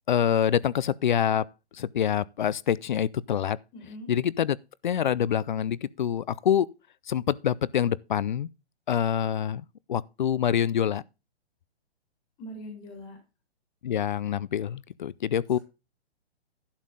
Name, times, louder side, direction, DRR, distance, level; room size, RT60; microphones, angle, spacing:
voice 1, 0.1-1.5 1.8-3.6 4.1-4.6 4.8-6.7 7.1-8.5 8.9-11.0 13.8-15.6, left 9 dB, 45° left, 0.4 m, -26 dB
voice 2, 3.7-4.1 12.4-13.2, equal, 15° left, 1.8 m, -41 dB
11.5 x 7.3 x 3.7 m
hypercardioid pair, 160°, 33 cm